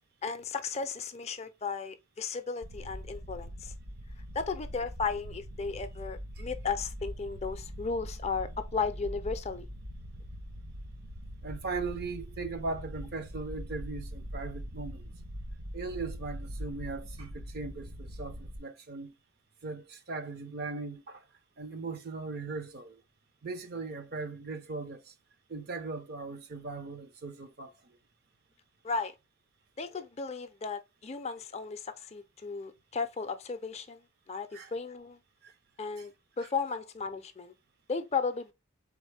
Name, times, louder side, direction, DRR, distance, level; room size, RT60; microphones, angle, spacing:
voice 1, 0.2-3.7 4.3-9.7 28.8-29.1 29.8-35.2 35.8-37.5 37.9-38.5, left 5 dB, 30° left, 0.4 m, -35 dB
sound 1, 2.6-18.6, equal, 65° right, 1.0 m, -42 dB
voice 2, 11.4-15.0 15.7-19.1 19.6-21.2 21.6-23.0 23.4-25.1 25.5-27.7 34.5-34.7 35.4-35.5, right 3 dB, 50° right, 0.6 m, -39 dB
3.8 x 3.5 x 3.2 m
head